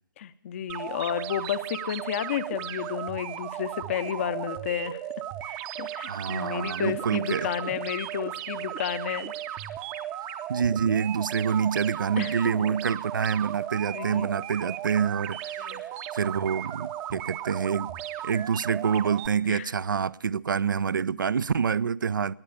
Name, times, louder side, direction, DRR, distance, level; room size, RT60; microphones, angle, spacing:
voice 1, 0.2-5.0 5.4-9.6 12.2-12.4 13.9-14.3 15.6-15.8 19.5-19.7, left 10 dB, 40° left, 0.6 m, -32 dB
sound 1, 0.7-19.3, right 12 dB, 20° right, 0.6 m, -36 dB
voice 2, 6.1-7.5 10.5-15.8 16.1-17.9 18.2-22.3, right 7 dB, 70° right, 0.4 m, -27 dB
19.5 x 8.6 x 6.7 m
figure-of-eight pair, 140°, 11 cm